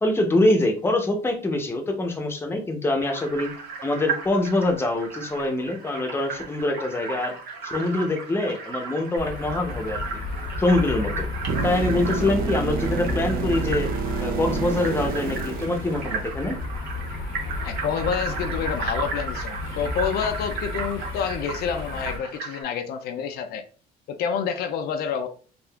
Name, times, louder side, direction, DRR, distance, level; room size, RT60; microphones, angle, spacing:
voice 1, 0.0-3.5 3.8-7.3 7.6-10.0 10.6-11.3 11.6-16.6, left 2 dB, 15° left, 3 dB, 0.6 m, -24 dB
sound 1, 3.0-22.6, right 4 dB, 80° right, 0.9 m, -35 dB
Paragliding (gopro audio), 9.2-22.2, left 3 dB, 85° left, 0.9 m, -33 dB
sound 2, 11.5-16.5 20.5-20.6, right 4 dB, 60° right, 0.5 m, -29 dB
voice 2, 17.6-23.6 24.1-25.3, left 7 dB, 70° left, 7 dB, 0.4 m, -28 dB
3.5 x 2.4 x 2.3 m, 0.39 s
cardioid pair, 110°, 17 cm